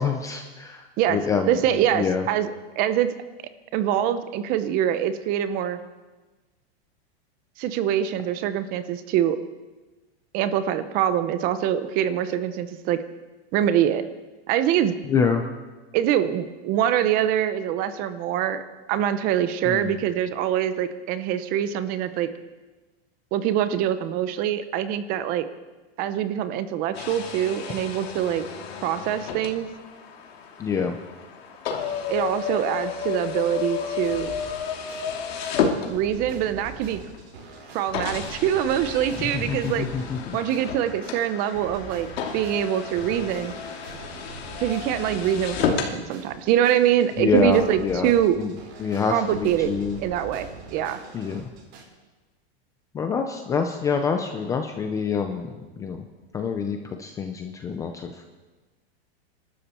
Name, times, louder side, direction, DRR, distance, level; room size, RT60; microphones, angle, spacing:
voice 1, 0.0-2.3 15.0-15.4 19.7-20.0 30.6-31.0 39.2-40.4 47.2-50.0 51.1-51.5 52.9-56.1 56.3-58.2, left 6 dB, 10° left, 5 dB, 0.4 m, -27 dB
voice 2, 1.5-2.5 2.8-3.1 3.7-5.8 7.6-9.4 10.3-13.0 13.5-14.0 14.5-14.9 15.9-18.6 18.9-22.3 23.3-25.4 26.0-28.4 28.8-29.7 32.1-34.3 35.9-37.0 37.7-39.9 40.3-42.1 42.3-43.5 44.6-48.4 49.1-49.7 50.0-51.0, right 10 dB, 30° right, 12 dB, 0.8 m, -24 dB
sound 1, 26.9-36.4 37.1-37.2 37.9-46.0, left 6 dB, 70° left, 2.8 m, -32 dB
sound 2, 34.0-51.8, right 4 dB, 80° right, 5.3 m, -43 dB
26.0 x 12.5 x 4.4 m, 1.2 s
supercardioid pair, 165°, 31 cm